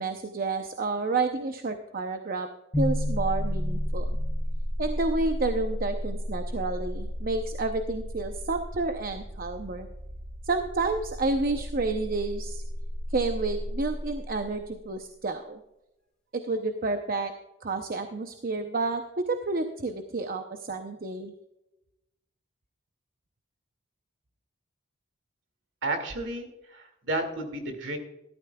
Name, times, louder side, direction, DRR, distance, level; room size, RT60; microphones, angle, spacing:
voice 1, 0.0-2.5 2.8-4.2 4.8-9.9 10.4-12.6 13.1-15.6 16.4-17.3 17.6-21.3, right 3 dB, 45° right, 6 dB, 0.7 m, -30 dB
sound 1, 2.7-14.8, equal, 5° left, 2.9 m, -33 dB
voice 2, 25.8-28.0, right 2 dB, 65° right, 5 dB, 2.3 m, -32 dB
14.5 x 13.0 x 2.3 m, 0.92 s
head